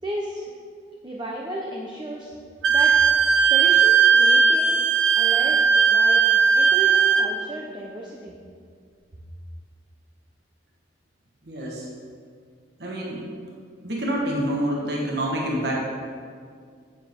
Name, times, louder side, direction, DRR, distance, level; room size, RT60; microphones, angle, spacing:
voice 1, 0.0-0.5 1.0-2.3 2.7-2.9 3.5-4.8 5.2-5.6 5.9-6.3 6.6-8.4, right 1 dB, 25° right, -2 dB, 0.7 m, -33 dB
Wind instrument woodwind instrument, 2.6-7.3, right 6 dB, 90° right, 0.6 m, -17 dB
voice 2, 11.4-11.9 12.8-13.2 13.8-15.8, right 1 dB, 60° right, -2 dB, 1.3 m, -27 dB
9.9 x 8.1 x 3.6 m, 2.1 s
head